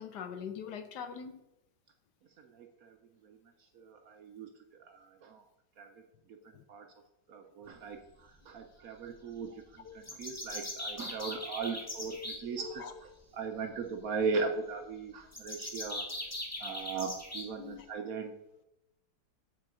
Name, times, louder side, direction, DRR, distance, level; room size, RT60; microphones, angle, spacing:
voice 1, 0.0-1.4 9.8-10.2 11.9-12.3 12.6-12.9 17.6-17.9, left 7 dB, 70° left, 9 dB, 1.3 m, -43 dB
voice 2, 2.5-2.9 3.2-3.4 3.7-4.5 4.8-5.4 5.8-5.9 6.7-6.9 7.3-8.0 8.5-12.8 13.3-16.1 16.6-18.3, right 4 dB, 65° right, 5 dB, 1.0 m, -38 dB
sound 1, 10.0-12.4 15.3-17.4, left 1 dB, 10° left, 1.1 m, -40 dB
7.3 x 4.6 x 6.0 m, 0.88 s
omnidirectional pair, 2.0 m